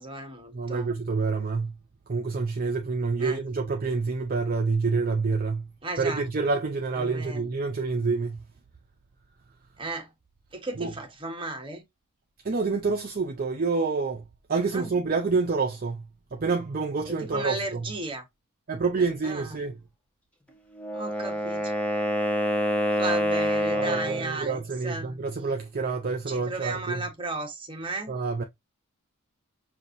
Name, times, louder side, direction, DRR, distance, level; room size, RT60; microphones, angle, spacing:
voice 1, 0.0-0.9 3.2-3.4 5.8-6.2 7.0-7.4 9.8-10.1 10.5-11.8 14.7-14.9 17.0-18.2 19.2-19.6 20.9-21.8 22.9-25.2 26.3-28.2, right 2 dB, 25° right, 1.2 m, -35 dB
voice 2, 0.5-1.7 2.1-5.7 6.0-8.4 10.8-10.9 12.4-14.2 14.5-16.0 16.3-17.9 18.7-19.8 23.7-27.0 28.1-28.4, right 4 dB, 40° right, 0.6 m, -27 dB
Wind instrument woodwind instrument, 20.7-24.3, equal, 5° left, 1.0 m, -26 dB
5.7 x 2.6 x 2.6 m
head